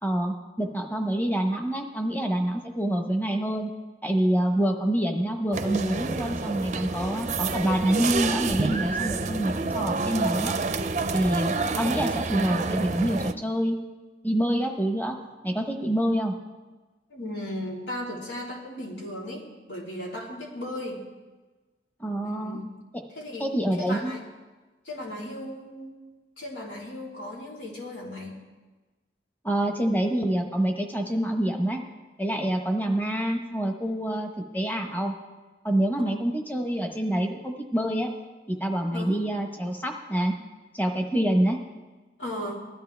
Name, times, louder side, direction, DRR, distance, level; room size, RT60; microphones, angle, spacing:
voice 1, 0.0-3.7 4.0-10.5 11.1-13.8 14.2-15.2 15.4-16.3 22.0-22.6 22.9-23.0 23.4-24.2 29.4-31.8 32.2-34.3 34.5-35.1 35.6-38.1 38.6-40.3 40.7-41.6, right 1 dB, 10° left, 3 dB, 1.1 m, -26 dB
sound 1, 5.5-13.3, right 3 dB, 40° right, 0.5 m, -28 dB
voice 2, 17.1-21.0 22.2-22.6 23.1-23.5 23.9-24.2 24.8-25.9 26.4-28.4 38.9-39.2 42.2-42.6, left 1 dB, 90° left, -4 dB, 3.6 m, -36 dB
20.0 x 13.0 x 3.4 m, 1.2 s
head